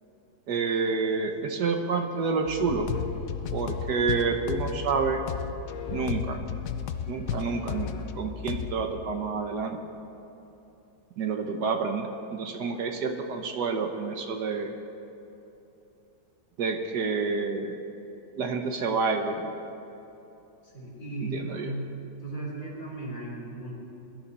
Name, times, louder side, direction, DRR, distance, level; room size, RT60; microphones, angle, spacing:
voice 1, 0.5-2.9 3.5-5.2 5.9-6.4 7.1-9.8 11.2-14.7 16.6-17.8 18.4-19.5 21.3-21.7, right 4 dB, 70° right, 4 dB, 1.5 m, -28 dB
sound 1, 2.5-8.8, left 8 dB, 65° left, 0.9 m, -34 dB
voice 2, 20.7-21.8 22.2-23.7, right 2 dB, 45° left, -4 dB, 4.1 m, -36 dB
21.5 x 12.0 x 4.2 m, 3.0 s
omnidirectional pair, 2.0 m